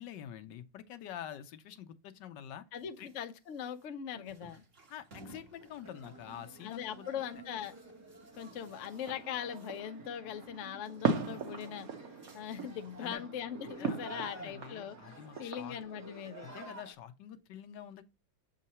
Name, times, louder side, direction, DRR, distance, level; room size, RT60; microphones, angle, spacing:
voice 1, 0.0-2.6 3.0-3.1 4.9-7.1 13.0-13.2 13.8-15.8 16.4-18.0, left 10 dB, 75° left, 1.3 m, -47 dB
voice 2, 2.7-4.6 6.6-7.8 8.4-11.9 12.3-15.0 15.4-16.5, left 9 dB, 60° left, 0.8 m, -40 dB
sound 1, 2.7-10.0 10.3-13.1, right 3 dB, 35° right, 1.4 m, -61 dB
sound 2, 5.8-16.9, right 2 dB, 15° right, 0.7 m, -52 dB
sound 3, 8.3-15.8, right 5 dB, 55° right, 1.3 m, -39 dB
7.5 x 3.7 x 4.2 m
omnidirectional pair, 2.0 m